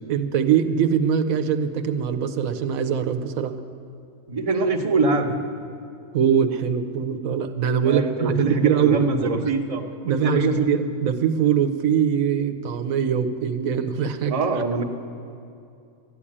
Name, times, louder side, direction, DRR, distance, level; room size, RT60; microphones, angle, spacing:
voice 1, 0.1-3.5 6.1-9.4 10.0-14.4, right 8 dB, 90° right, 7 dB, 1.2 m, -22 dB
voice 2, 4.3-5.4 7.8-10.7 14.3-14.8, right 3 dB, 30° right, 3 dB, 1.0 m, -23 dB
13.0 x 9.8 x 8.7 m, 2.5 s
omnidirectional pair, 1.4 m